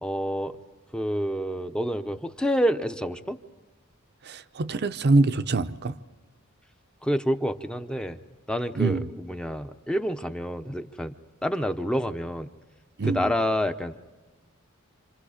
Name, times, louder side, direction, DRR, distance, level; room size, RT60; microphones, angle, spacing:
voice 1, 0.0-0.6 0.9-3.4 7.0-8.2 8.5-9.0 9.3-11.2 11.4-12.5 13.0-14.0, equal, 5° left, 0.7 m, -28 dB
voice 2, 4.2-5.9 8.8-9.1 13.0-13.3, right 3 dB, 50° right, 0.6 m, -24 dB
27.5 x 27.0 x 5.0 m
head